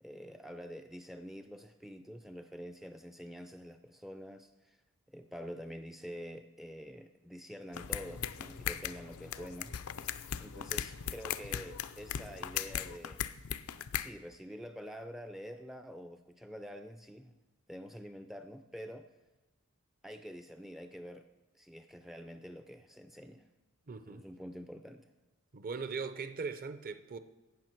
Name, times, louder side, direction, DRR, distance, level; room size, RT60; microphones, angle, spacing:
voice 1, 0.0-4.8 5.1-9.8 10.4-13.2 14.0-17.3 17.7-19.0 20.0-21.3 21.5-23.5 24.1-25.0, equal, ahead, 0.3 m, -47 dB
sound 1, 7.7-14.1, left 9 dB, 80° left, 0.5 m, -38 dB
voice 2, 23.9-24.2 25.5-27.2, right 5 dB, 40° right, 0.6 m, -39 dB
16.5 x 6.3 x 4.5 m
head